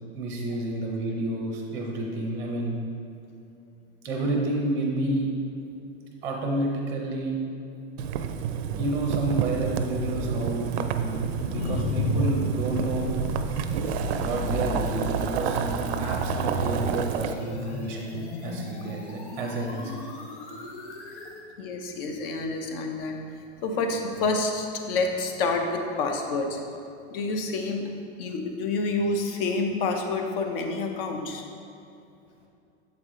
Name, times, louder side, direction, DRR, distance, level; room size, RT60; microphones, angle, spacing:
voice 1, 0.1-2.8 4.0-5.3 6.2-7.4 8.8-13.1 14.2-20.0, right 2 dB, 10° right, -1 dB, 0.6 m, -30 dB
Boiling, 8.0-17.3, right 8 dB, 70° right, 0.5 m, -30 dB
sound 1, 9.3-21.4, left 1 dB, 85° left, 1.2 m, -37 dB
voice 2, 11.2-12.2 12.8-12.9 21.6-23.2 23.6-26.6 27.1-27.9 28.2-31.4, left 3 dB, 55° left, 4 dB, 0.8 m, -28 dB
7.4 x 4.8 x 3.7 m, 2.7 s
supercardioid pair, 150°, 33 cm